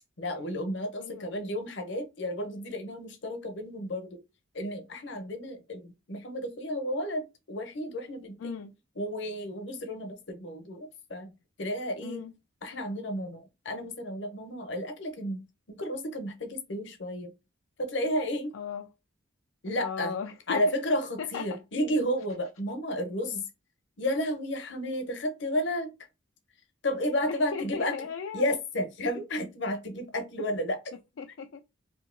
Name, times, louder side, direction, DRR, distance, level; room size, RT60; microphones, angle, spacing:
voice 1, 0.2-4.2 4.5-8.6 9.0-11.3 11.6-12.2 12.6-17.3 17.8-18.5 19.6-20.2 20.5-23.4 24.0-25.9 26.8-30.8, left 1 dB, 65° left, 0.8 m, -32 dB
voice 2, 1.0-1.5 8.4-8.7 12.0-12.3 18.5-18.9 19.8-20.7 21.2-21.5 27.3-28.5 31.2-31.6, left 6 dB, 80° left, 0.4 m, -37 dB
2.8 x 2.7 x 3.7 m
head